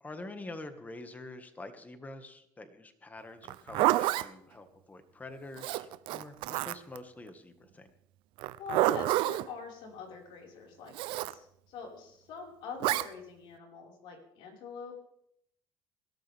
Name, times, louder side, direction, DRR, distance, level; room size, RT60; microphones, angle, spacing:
voice 1, 0.0-7.9, left 2 dB, 20° left, 8 dB, 1.9 m, -46 dB
Zipper (clothing), 3.4-4.3 5.6-7.0 8.4-9.5 10.9-11.3 12.8-13.1, right 16 dB, 75° right, 0.7 m, -28 dB
voice 2, 8.6-15.0, left 5 dB, 70° left, 0 dB, 5.4 m, -44 dB
23.5 x 13.0 x 3.6 m, 0.71 s
cardioid pair, 110°, 9 cm